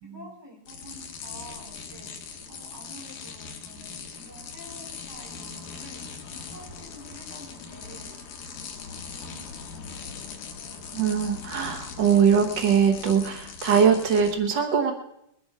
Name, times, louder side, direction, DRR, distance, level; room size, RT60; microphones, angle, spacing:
voice 1, 0.0-2.1 2.5-6.0 6.5-8.2 8.8-10.1, equal, 5° right, -3 dB, 4.4 m, -48 dB
sound 1, 0.7-14.3, left 6 dB, 85° left, 3.1 m, -40 dB
voice 2, 10.9-14.9, right 7 dB, 90° right, 5 dB, 0.9 m, -21 dB
21.0 x 9.3 x 4.8 m, 0.79 s
omnidirectional pair, 3.7 m